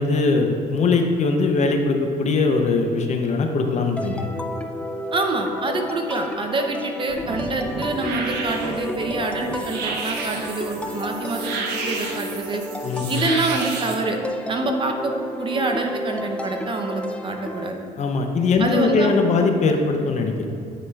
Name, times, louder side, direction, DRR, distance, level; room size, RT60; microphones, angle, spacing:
voice 1, 0.0-4.3 12.8-13.2 18.0-20.5, left 3 dB, 45° left, 4 dB, 0.7 m, -21 dB
sound 1, 4.0-17.7, left 1 dB, 5° left, 0.4 m, -32 dB
voice 2, 5.1-12.6 13.1-14.2 14.5-17.8 18.6-19.2, right 3 dB, 30° right, 3 dB, 0.7 m, -26 dB
sound 2, 7.1-13.9, right 4 dB, 85° right, 0.9 m, -31 dB
9.9 x 4.8 x 2.4 m, 2.5 s
cardioid pair, 110°, 17 cm